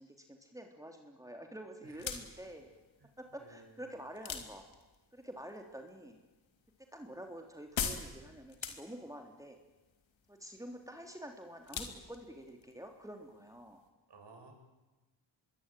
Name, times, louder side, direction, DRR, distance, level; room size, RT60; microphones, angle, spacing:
voice 1, 0.0-2.7 3.2-4.7 5.1-6.2 6.9-9.6 10.3-13.8, right 1 dB, 5° right, 3 dB, 3.7 m, -48 dB
sound 1, 1.8-13.9, left 6 dB, 80° left, 3.3 m, -45 dB
voice 2, 3.4-3.8 14.1-14.5, right 3 dB, 60° right, 3 dB, 7.9 m, -56 dB
25.5 x 22.5 x 9.4 m, 1.1 s
cardioid pair, 70°, 45 cm